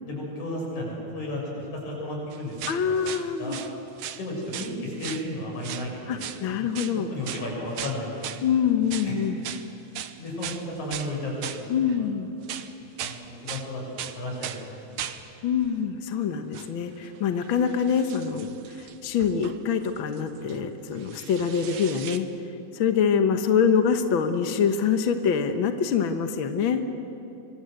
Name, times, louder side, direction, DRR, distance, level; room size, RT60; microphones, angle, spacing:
voice 1, 0.0-3.1 3.4-3.6 4.2-6.2 6.6-6.7 7.1-8.4 9.0-9.2 10.1-11.7 12.0-12.1 13.0-14.6, left 1 dB, 75° left, -2 dB, 8.5 m, -33 dB
sound 1, 2.3-3.7 4.0-4.7 5.0-5.3 5.6-5.9 6.2-6.4 6.8-7.0 7.2-7.5 7.8-8.5 8.9-9.1 9.4-9.7 10.0-11.1 11.4-12.1 12.4-13.2 13.5-13.7 14.0-14.6 15.0-15.2 15.6-15.8 16.5-16.7 17.0-20.6 20.9-22.2, right 10 dB, 70° right, 2.2 m, -38 dB
voice 2, 2.7-3.6 6.1-7.1 8.4-9.4 11.7-12.3 15.4-18.5 18.8-22.3 22.7-26.8, left 7 dB, 55° left, 7 dB, 1.6 m, -25 dB
25.5 x 24.5 x 8.0 m, 2.7 s
omnidirectional pair, 3.4 m